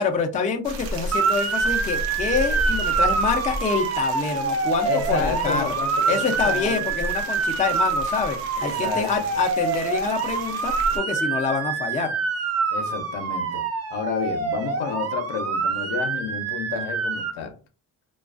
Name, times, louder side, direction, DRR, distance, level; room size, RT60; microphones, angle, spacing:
voice 1, 0.0-5.7 6.1-12.1, left 5 dB, 20° left, 0.4 m, -26 dB
sound 1, 0.6-11.0, right 1 dB, 90° right, 0.7 m, -34 dB
Motor vehicle (road) / Siren, 1.1-17.3, right 5 dB, 35° right, 0.6 m, -26 dB
voice 2, 4.8-6.9 8.6-9.2 12.7-13.6 13.9-17.5, left 7 dB, 65° left, 0.6 m, -30 dB
2.3 x 2.3 x 2.4 m
cardioid pair, 75°, 44 cm